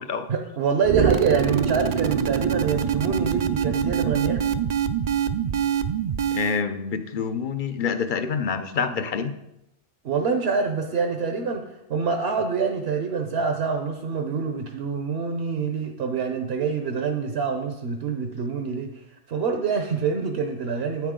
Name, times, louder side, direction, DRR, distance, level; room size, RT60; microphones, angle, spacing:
voice 1, 0.3-4.4 10.0-11.6 11.9-21.1, right 5 dB, 75° right, 5 dB, 1.1 m, -26 dB
sound 1, 0.8-6.6, right 8 dB, 55° right, 0.5 m, -24 dB
voice 2, 6.3-9.3, left 6 dB, 55° left, 10 dB, 0.8 m, -27 dB
9.3 x 8.7 x 3.7 m, 0.86 s
omnidirectional pair, 1.1 m